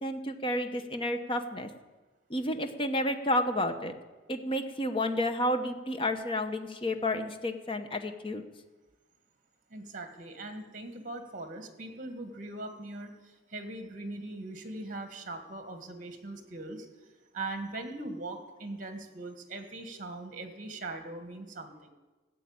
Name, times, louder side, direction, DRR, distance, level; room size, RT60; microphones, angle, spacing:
voice 1, 0.0-1.7 2.3-3.9 4.3-8.4, left 1 dB, 30° left, 8 dB, 1.0 m, -31 dB
voice 2, 9.7-16.9 17.3-21.9, right 2 dB, 45° right, 7 dB, 1.7 m, -40 dB
14.5 x 8.1 x 8.7 m, 1.2 s
head